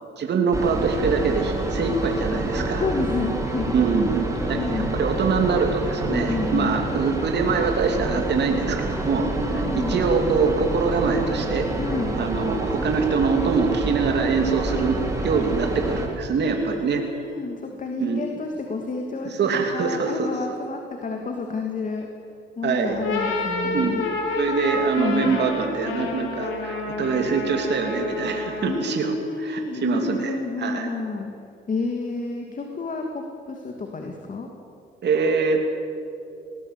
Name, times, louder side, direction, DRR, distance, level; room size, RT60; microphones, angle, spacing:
voice 1, 0.2-2.8 3.7-11.7 12.2-15.0 15.2-17.0 18.0-18.2 19.2-20.3 22.6-23.0 23.7-24.1 24.4-29.1 29.4-30.9 35.0-35.7, right 5 dB, 60° right, 3 dB, 3.0 m, -24 dB
sound 1, 0.5-16.1, right 2 dB, 15° right, 4.0 m, -27 dB
voice 2, 2.8-3.7 4.5-4.9 6.1-6.8 9.2-10.0 11.8-12.1 14.7-14.9 16.4-22.1 22.6-24.1 25.0-25.4 28.7-31.3 31.7-34.5, left 3 dB, 40° left, 2 dB, 2.6 m, -30 dB
sound 2, 22.9-28.9, left 3 dB, 85° left, 4.2 m, -29 dB
19.0 x 19.0 x 8.3 m, 2.4 s
cardioid pair, 90°, 20 cm